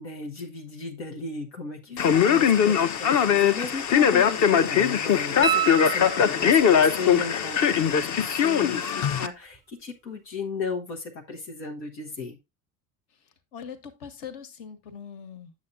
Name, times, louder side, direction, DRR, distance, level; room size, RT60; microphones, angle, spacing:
voice 1, 0.0-12.4, left 4 dB, 90° left, 1.0 m, -35 dB
voice 2, 1.9-2.4 13.2-15.5, left 7 dB, 65° left, 1.4 m, -41 dB
Male speech man speaking, 2.0-9.3, left 8 dB, 35° left, 0.6 m, -21 dB
sound 1, 5.4-6.8 9.5-9.6, right 9 dB, 10° right, 0.3 m, -28 dB
8.3 x 7.2 x 2.5 m
hypercardioid pair, 75°, 50 cm